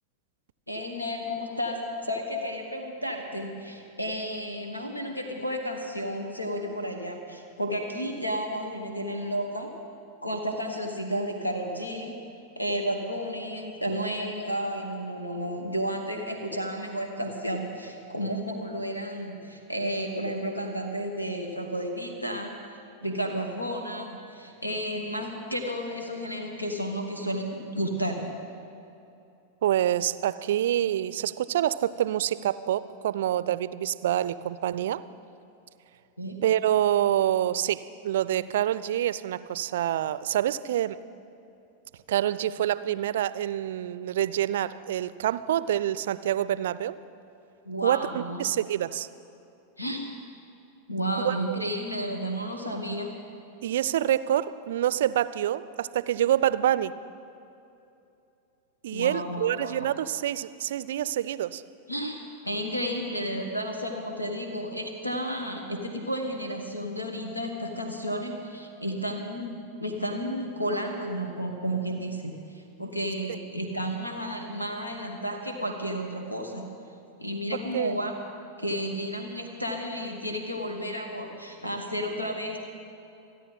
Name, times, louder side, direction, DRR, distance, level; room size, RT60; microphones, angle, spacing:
voice 1, 0.7-9.7 10.2-12.2 12.6-22.6 23.0-28.3 36.2-36.4 47.6-48.4 49.8-50.1 50.9-53.2 58.9-59.9 61.9-76.7 77.2-78.2 78.6-82.6, equal, 85° left, 3 dB, 1.3 m, -32 dB
voice 2, 29.6-35.0 36.4-41.0 42.1-47.0 47.8-49.1 51.2-51.6 53.6-56.9 58.8-61.6 77.7-77.9, right 11 dB, 60° right, 17 dB, 0.4 m, -26 dB
27.5 x 10.0 x 4.0 m, 2.7 s
figure-of-eight pair, 90°, 0 cm